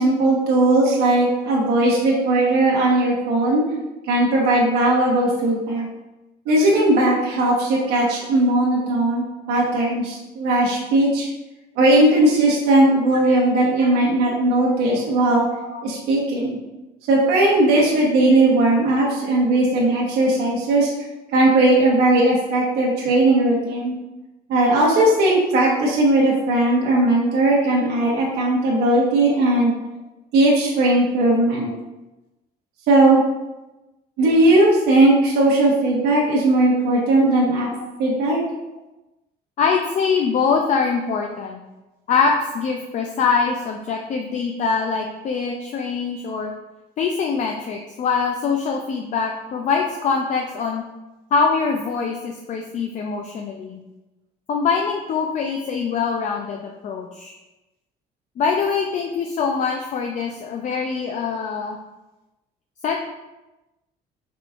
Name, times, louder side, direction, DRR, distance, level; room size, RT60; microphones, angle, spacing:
voice 1, 0.0-3.6 4.1-5.9 6.5-11.3 11.8-15.4 15.8-16.6 17.1-20.9 21.3-23.9 24.5-29.7 30.3-31.7 32.9-33.2 34.2-37.7 38.0-38.4, right 2 dB, 80° right, -4 dB, 1.0 m, -18 dB
voice 2, 39.6-41.6 42.1-46.5 47.0-50.8 51.3-53.8 54.5-57.3 58.4-61.8 62.8-63.0, left 5 dB, 45° left, 2 dB, 0.4 m, -23 dB
4.9 x 3.8 x 2.4 m, 1.0 s
cardioid pair, 110°, 17 cm